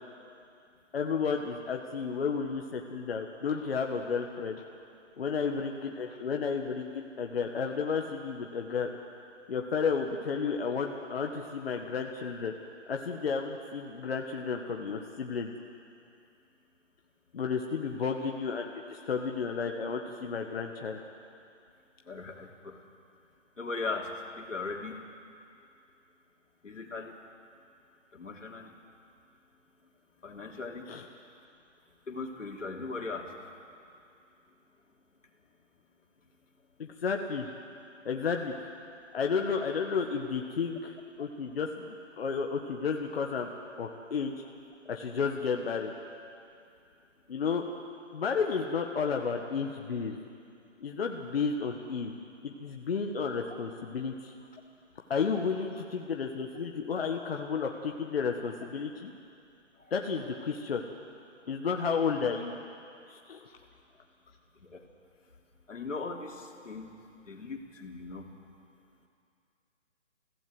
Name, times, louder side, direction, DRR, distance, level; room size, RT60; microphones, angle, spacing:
voice 1, 0.9-4.6 5.2-8.9 9.5-12.5 12.9-15.5 17.3-21.0 30.9-31.0 36.8-37.5 38.0-38.7 39.1-43.5 43.8-44.3 44.8-45.9 47.3-47.6 48.1-50.2 50.8-52.1 52.4-54.3 55.1-59.1 59.9-60.8 61.5-62.5 63.1-63.5, left 5 dB, 55° left, 2 dB, 1.6 m, -32 dB
voice 2, 22.0-22.8 23.6-24.1 24.4-25.0 26.6-27.2 28.1-28.7 30.2-30.8 32.1-33.3 59.8-59.9 64.6-64.8 65.7-66.9 67.2-68.3, left 4 dB, 85° left, 1 dB, 3.4 m, -38 dB
27.5 x 16.5 x 7.8 m, 2.5 s
hypercardioid pair, 165°, 37 cm